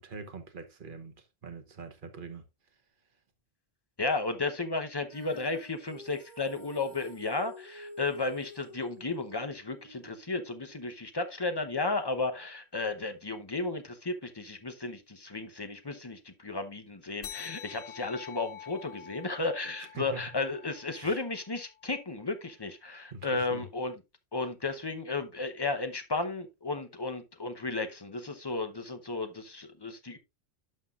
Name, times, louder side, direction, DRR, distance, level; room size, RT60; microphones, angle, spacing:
voice 1, 0.0-2.4 19.8-20.3 20.9-21.2 23.1-23.7, right 4 dB, 45° right, 1.1 m, -44 dB
voice 2, 4.0-23.9 24.3-30.2, left 3 dB, 25° left, 0.7 m, -34 dB
Female singing, 5.1-11.3, left 1 dB, 15° right, 2.3 m, -50 dB
sound 1, 17.2-22.1, left 10 dB, 55° left, 0.8 m, -47 dB
11.5 x 5.6 x 2.4 m
omnidirectional pair, 1.3 m